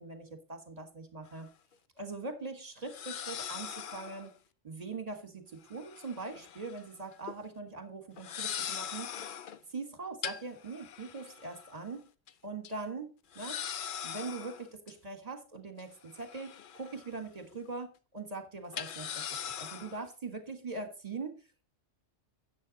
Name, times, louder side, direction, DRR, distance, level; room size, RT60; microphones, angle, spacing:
voice 1, 0.0-1.5 2.0-4.3 4.6-9.1 9.7-12.1 12.4-13.6 14.0-19.3 19.6-21.4, right 3 dB, 30° right, 7 dB, 1.6 m, -42 dB
sound 1, 1.3-1.4 2.9-4.3 5.7-6.9 7.1-7.4 8.2-9.6 10.2-11.9 12.3-12.4 12.6-12.7 13.3-14.9 15.8-17.2 17.5-17.7 18.7-20.0, left 9 dB, 55° left, 0.6 m, -41 dB
9.9 x 7.5 x 4.0 m, 0.33 s
omnidirectional pair, 1.3 m